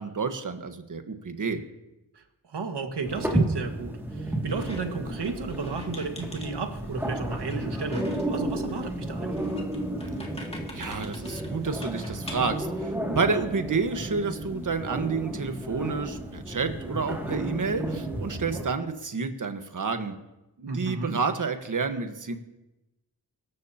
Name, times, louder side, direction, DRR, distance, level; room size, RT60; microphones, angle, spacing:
voice 1, 0.0-1.6 10.7-20.1 20.6-22.3, right 4 dB, 45° right, 7 dB, 1.4 m, -29 dB
voice 2, 2.1-9.4 20.7-21.4, right 4 dB, 70° right, 5 dB, 1.9 m, -33 dB
sound 1, 3.0-18.6, right 1 dB, 5° right, 2.4 m, -32 dB
Squeak, 4.5-12.6, left 1 dB, 15° left, 2.4 m, -45 dB
24.5 x 13.5 x 2.9 m, 0.97 s
wide cardioid pair, 100°, 42 cm